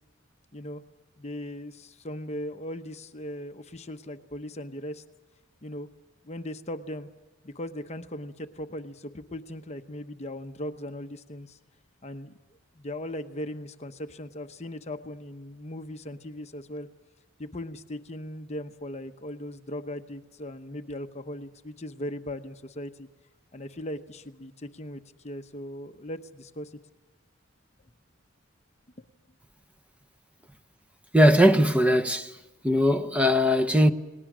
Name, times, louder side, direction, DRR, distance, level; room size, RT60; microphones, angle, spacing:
voice 1, 1.2-5.0 5.6-5.9 6.2-7.1 7.4-11.6 12.0-16.9 17.4-23.1 23.5-26.7, left 1 dB, 30° left, 0.9 m, -38 dB
voice 2, 31.1-32.3 32.6-33.9, equal, 5° right, 0.9 m, -20 dB
29.5 x 19.0 x 6.2 m
head